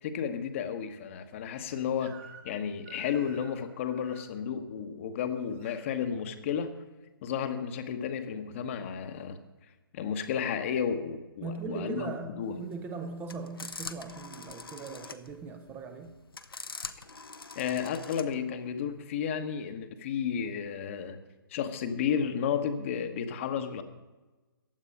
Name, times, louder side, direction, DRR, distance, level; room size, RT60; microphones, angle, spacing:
voice 1, 0.0-2.2 2.4-6.7 7.2-9.4 9.9-12.6 17.5-21.2 21.5-23.8, left 7 dB, 35° left, 1.1 m, -32 dB
Crying sobbing / Screech, 2.0-2.6 2.8-4.3 5.2-5.9, right 7 dB, 35° right, 2.1 m, -52 dB
voice 2, 11.4-16.2, right 4 dB, 15° right, 0.7 m, -39 dB
sound 1, 12.5-18.4, left 4 dB, 75° left, 1.0 m, -44 dB
15.0 x 10.0 x 5.4 m
figure-of-eight pair, 130°, 12 cm